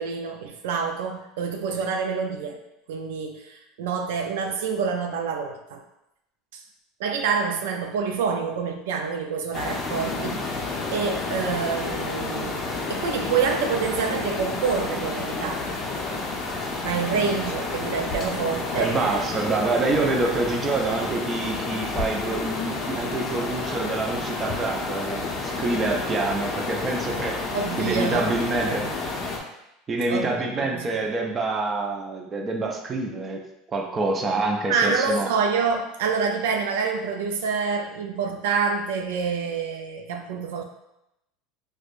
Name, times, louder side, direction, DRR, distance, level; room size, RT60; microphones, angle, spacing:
voice 1, 0.0-2.6 2.9-5.8 6.5-6.6 7.0-12.6 12.9-15.8 16.8-19.2 27.5-28.9 30.1-30.3 30.6-31.0 34.7-40.6, right 5 dB, 90° right, 4 dB, 0.4 m, -27 dB
sound 1, 9.5-29.4, left 3 dB, 30° left, 0.5 m, -30 dB
voice 2, 18.8-27.4 27.8-28.8 29.9-33.4 33.7-35.3, right 3 dB, 20° right, 1 dB, 0.4 m, -26 dB
4.7 x 2.1 x 2.5 m, 0.85 s
supercardioid pair, 145°, 0 cm